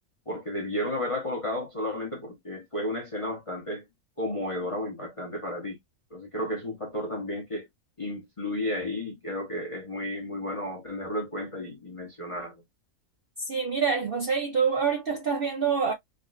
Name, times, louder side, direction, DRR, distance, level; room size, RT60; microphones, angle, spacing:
voice 1, 0.3-3.8 4.2-5.8 6.1-7.7 8.0-12.6, left 1 dB, 30° left, 0.7 m, -33 dB
voice 2, 13.5-15.9, right 6 dB, 50° right, 0.7 m, -26 dB
3.5 x 2.4 x 2.3 m
omnidirectional pair, 1.6 m